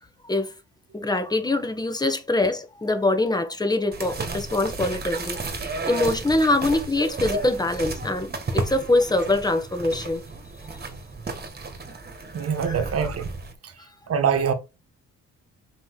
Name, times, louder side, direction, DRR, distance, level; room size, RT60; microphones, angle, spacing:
voice 1, 0.9-5.4 5.9-10.2 12.7-12.8, left 2 dB, 15° left, 1.5 m, -24 dB
sound 1, 3.9-13.5, right 3 dB, 30° right, 1.9 m, -33 dB
voice 2, 12.3-13.3 13.6-13.7 14.1-14.5, right 7 dB, 50° right, 1.7 m, -24 dB
6.1 x 3.6 x 4.9 m
cardioid pair, 90°, 30 cm